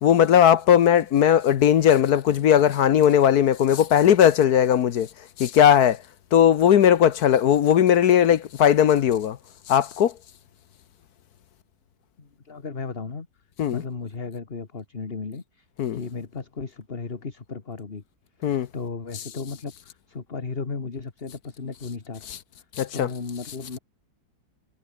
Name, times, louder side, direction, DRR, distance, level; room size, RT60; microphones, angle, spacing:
voice 1, 0.0-5.1 5.4-6.0 6.3-9.4 9.7-10.1 13.6-13.8 15.8-16.0 18.4-18.7 22.8-23.1, left 9 dB, 65° left, 1.3 m, -18 dB
voice 2, 12.2-13.3 13.7-15.7 15.9-18.0 18.7-22.2 22.9-23.8, left 4 dB, 35° left, 2.0 m, -35 dB
omnidirectional pair, 1.9 m